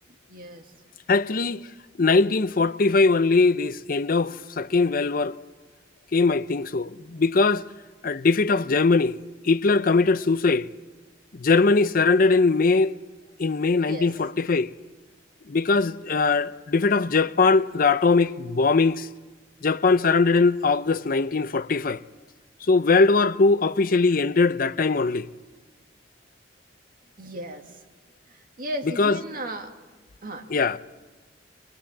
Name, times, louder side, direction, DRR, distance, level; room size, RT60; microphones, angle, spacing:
voice 1, 0.3-0.6 13.8-14.1 27.2-27.6 28.6-29.7 30.2-30.4, right 1 dB, 50° right, 1.9 m, -34 dB
voice 2, 1.1-1.7 2.0-5.4 6.1-7.6 8.0-9.2 9.4-10.7 11.3-12.9 13.4-14.7 15.5-19.1 19.6-22.0 22.7-25.3 28.8-29.2 30.5-30.8, left 3 dB, 50° left, 0.6 m, -21 dB
24.0 x 20.5 x 7.3 m
head